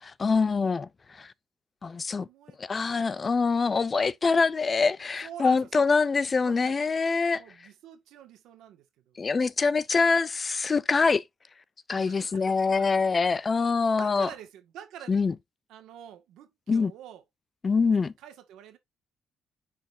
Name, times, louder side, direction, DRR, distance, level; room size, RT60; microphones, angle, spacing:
voice 1, 0.0-1.3 1.8-2.3 2.6-7.4 9.2-11.2 11.9-14.3 15.1-15.3 16.7-16.9 17.6-18.1, left 4 dB, 35° left, 0.5 m, -25 dB
voice 2, 2.2-3.3 5.2-5.9 6.4-6.8 7.3-9.4 11.9-13.1 13.7-15.2 15.7-17.2 18.0-18.8, right 10 dB, 90° right, 1.6 m, -47 dB
9.9 x 4.2 x 2.6 m
cardioid pair, 90°, 0 cm